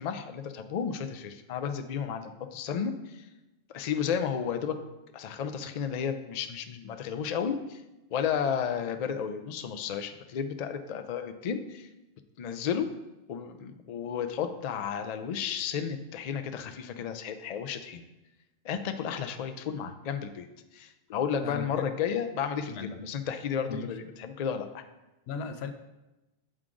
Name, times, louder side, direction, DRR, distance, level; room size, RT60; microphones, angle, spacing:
voice 1, 0.0-3.2 3.7-4.8 5.1-7.8 8.1-11.9 12.4-12.9 13.3-18.0 18.6-20.5 20.7-24.8, left 7 dB, 50° left, 8 dB, 0.5 m, -33 dB
voice 2, 21.4-21.9 22.7-23.1 23.7-23.9 25.3-25.7, left 5 dB, 90° left, 8 dB, 0.8 m, -37 dB
7.6 x 4.8 x 3.8 m, 1.0 s
omnidirectional pair, 1.0 m